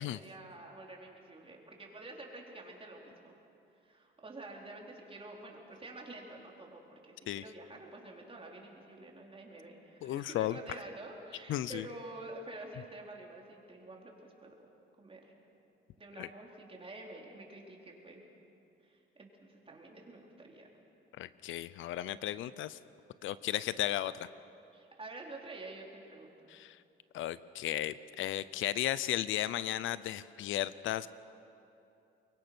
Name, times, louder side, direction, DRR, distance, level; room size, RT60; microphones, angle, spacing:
voice 1, 0.0-3.3 3.8-14.5 15.0-15.3 16.0-18.2 18.8-20.7 24.7-26.4, right 2 dB, 30° right, -1 dB, 4.2 m, -49 dB
voice 2, 10.0-10.6 11.5-11.9 16.2-16.3 21.2-22.8 23.2-24.3 26.5-26.8 27.1-31.1, left 13 dB, 80° left, 16 dB, 0.6 m, -35 dB
24.0 x 22.5 x 6.1 m, 2.7 s
cardioid pair, 90°, 20 cm